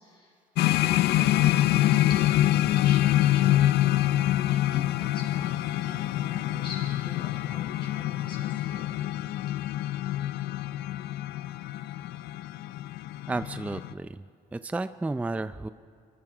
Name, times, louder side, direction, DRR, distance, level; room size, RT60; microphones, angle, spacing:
voice 1, 0.0-3.7 4.5-9.0, left 3 dB, 30° left, -3 dB, 7.2 m, -45 dB
sound 1, 0.6-13.9, left 14 dB, 70° left, 0.5 m, -25 dB
voice 2, 13.3-14.3 14.5-15.7, right 2 dB, 10° right, 12 dB, 0.4 m, -32 dB
26.5 x 24.0 x 5.0 m, 2.3 s
cardioid pair, 110°, 17 cm